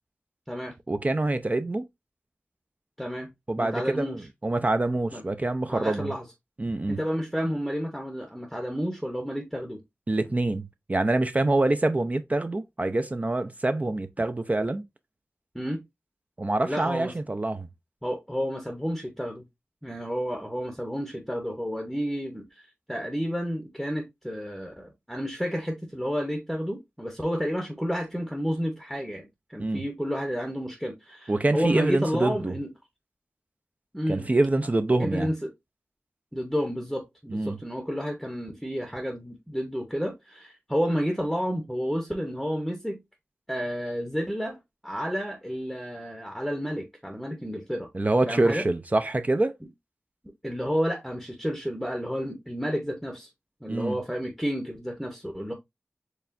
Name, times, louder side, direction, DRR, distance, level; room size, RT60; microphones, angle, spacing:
voice 1, 0.9-1.8 3.5-6.1 6.6-7.0 10.1-14.8 16.4-17.7 29.6-29.8 31.3-32.5 34.1-35.3 37.3-37.6 47.9-49.5 53.7-54.0, right 2 dB, 35° right, 0.4 m, -25 dB
voice 2, 3.0-3.3 3.6-4.2 5.1-5.2 5.7-6.3 6.9-9.8 15.5-15.8 16.6-17.1 18.0-19.5 19.8-32.7 33.9-34.3 35.0-35.5 36.3-43.0 43.5-44.6 44.8-47.9 48.3-48.7 50.4-53.3 53.6-55.5, equal, ahead, 0.7 m, -31 dB
4.7 x 3.2 x 2.4 m
wide cardioid pair, 60°, 4 cm